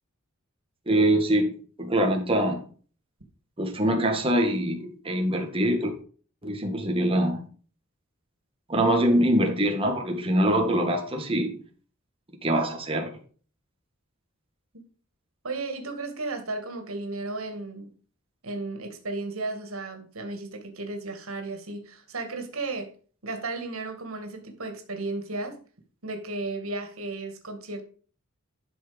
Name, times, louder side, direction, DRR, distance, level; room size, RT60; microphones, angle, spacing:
voice 1, 0.9-2.6 3.6-5.9 6.4-7.4 8.7-11.6 12.4-13.1, right 1 dB, 25° right, 2 dB, 2.0 m, -24 dB
voice 2, 15.4-17.9 18.4-22.9 23.2-25.6 26.0-27.8, right 3 dB, 85° right, 6 dB, 2.4 m, -34 dB
12.0 x 6.3 x 5.3 m, 0.41 s
head